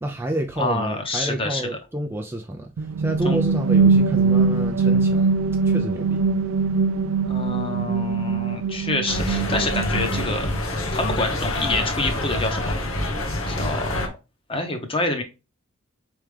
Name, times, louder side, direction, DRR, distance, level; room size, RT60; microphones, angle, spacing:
voice 1, 0.0-5.3 5.6-6.2, right 1 dB, 10° right, 0.4 m, -29 dB
voice 2, 0.6-1.6 3.2-3.4 7.3-10.5 10.9-12.8 13.5-14.1 14.5-15.2, left 2 dB, 25° left, 1.0 m, -27 dB
sound 1, 2.8-10.6, right 4 dB, 80° right, 0.3 m, -22 dB
sound 2, 9.1-14.1, left 1 dB, 80° left, 1.1 m, -26 dB
4.6 x 3.5 x 3.2 m
head